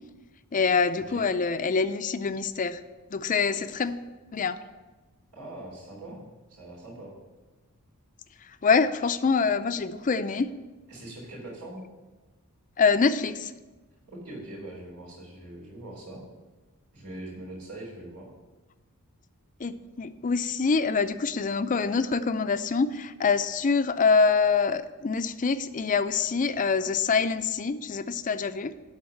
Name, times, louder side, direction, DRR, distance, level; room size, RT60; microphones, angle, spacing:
voice 1, 0.5-2.8 3.1-4.0 4.3-4.6 8.6-10.5 12.8-13.5 19.6-28.7, left 5 dB, 35° left, 11 dB, 0.4 m, -25 dB
voice 2, 5.3-7.1 10.9-11.8 14.1-16.2 16.9-18.3, right 1 dB, 85° right, -5 dB, 3.5 m, -42 dB
11.5 x 4.0 x 7.6 m, 1.2 s
head